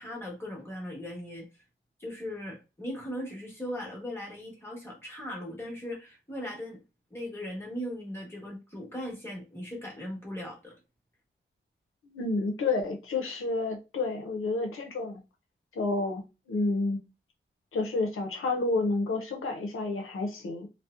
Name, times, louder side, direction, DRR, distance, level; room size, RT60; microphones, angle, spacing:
voice 1, 0.0-1.5 2.0-6.8 7.1-10.8, equal, 10° left, 1.0 m, -38 dB
voice 2, 12.0-15.2 15.7-16.2 16.5-17.0 17.7-20.7, left 3 dB, 90° left, 0.5 m, -30 dB
2.6 x 2.0 x 2.3 m
wide cardioid pair, 115°, 21 cm